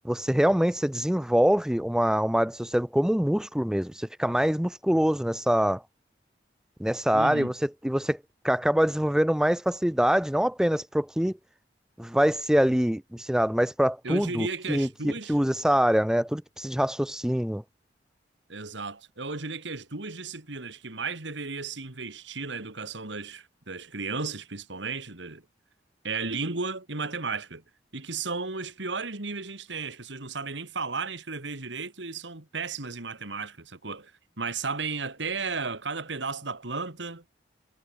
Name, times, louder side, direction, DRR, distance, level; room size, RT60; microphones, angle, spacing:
voice 1, 0.0-5.8 6.8-8.2 8.4-11.4 12.0-17.6, equal, 5° right, 0.5 m, -24 dB
voice 2, 7.1-7.5 14.0-15.4 18.5-25.4 26.0-27.6 27.9-34.1 34.4-37.2, right 4 dB, 80° right, 2.5 m, -34 dB
head